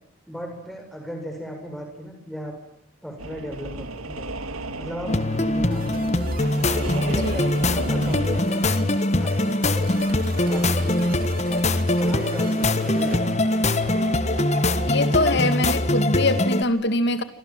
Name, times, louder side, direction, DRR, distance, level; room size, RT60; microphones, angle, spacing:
voice 1, 0.3-2.6 3.0-4.3 4.8-6.2 6.6-8.8 9.2-9.9 10.4-11.6 11.9-13.3, equal, ahead, 7.7 m, -36 dB
sound 1, 3.2-8.4, right 2 dB, 80° right, 2.2 m, -34 dB
sound 2, 5.1-16.6, left 1 dB, 30° left, 1.3 m, -22 dB
sound 3, 5.7-15.2, right 2 dB, 40° right, 3.2 m, -39 dB
voice 2, 14.9-17.2, left 2 dB, 50° left, 2.4 m, -23 dB
28.5 x 26.5 x 7.6 m
head